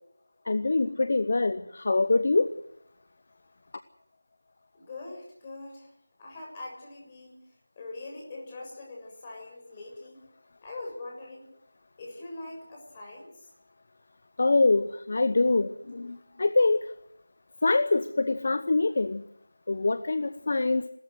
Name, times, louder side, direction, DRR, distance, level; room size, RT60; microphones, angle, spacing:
voice 1, 0.5-2.5 14.4-16.8 17.6-19.2 19.7-20.8, left 3 dB, 40° left, 12 dB, 1.0 m, -24 dB
voice 2, 4.7-5.9 6.2-7.4 7.7-10.2 10.6-11.5 12.0-13.5, left 2 dB, 15° left, -1 dB, 6.8 m, -42 dB
30.0 x 13.5 x 8.1 m, 0.80 s
figure-of-eight pair, 170°, 0 cm